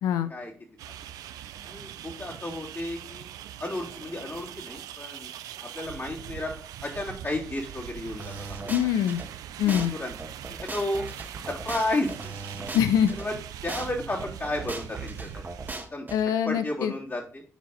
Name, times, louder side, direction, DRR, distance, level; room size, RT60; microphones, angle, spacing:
voice 1, 0.0-0.3 8.7-9.2 9.6-9.9 12.7-13.1 16.1-16.9, left 9 dB, 80° left, 12 dB, 0.5 m, -24 dB
sound 1, 0.8-15.7, right 11 dB, 80° right, 0.4 m, -42 dB
voice 2, 1.6-3.3 3.6-5.3 5.6-6.5 6.8-8.3 8.6-8.7 9.6-10.1 10.5-11.1 11.5-12.3 12.6-12.8 13.2-13.3 13.6-15.4 15.9-16.1 16.4-17.4, left 1 dB, 40° left, -5 dB, 3.4 m, -32 dB
sound 2, 8.2-9.3 9.7-9.9 10.2-13.3 13.7-13.9 14.2-16.2, right 3 dB, 30° right, 1.7 m, -38 dB
10.0 x 4.3 x 4.0 m, 0.41 s
supercardioid pair, 50°, 6 cm